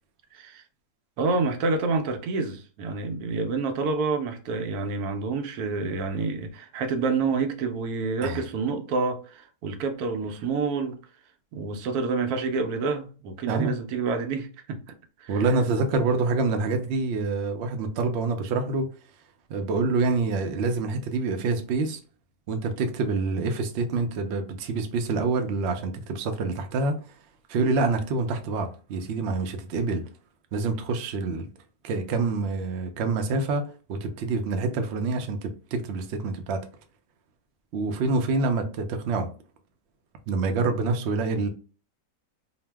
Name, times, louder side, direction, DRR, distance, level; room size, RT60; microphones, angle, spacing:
voice 1, 0.3-0.6 1.2-11.0 11.5-14.8 15.2-15.4, right 4 dB, 85° right, 1.1 m, -28 dB
voice 2, 15.3-18.9 19.5-22.0 22.5-26.9 27.5-30.0 30.5-31.5 31.8-36.6 37.7-39.3 40.3-41.5, right 3 dB, 65° right, 0.6 m, -26 dB
2.8 x 2.0 x 3.3 m
omnidirectional pair, 1.6 m